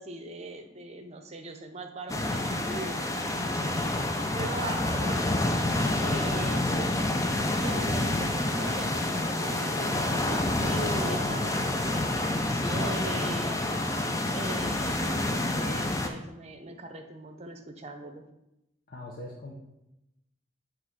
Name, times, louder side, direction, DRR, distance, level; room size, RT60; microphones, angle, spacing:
voice 1, 0.0-3.7 4.3-5.3 6.0-13.6 14.3-18.2, right 2 dB, 35° right, 6 dB, 0.8 m, -41 dB
sound 1, 2.1-16.1, left 1 dB, 15° left, 0.6 m, -28 dB
voice 2, 4.4-4.7 18.9-19.5, left 1 dB, 45° left, -3 dB, 0.9 m, -40 dB
8.0 x 3.3 x 6.2 m, 0.90 s
head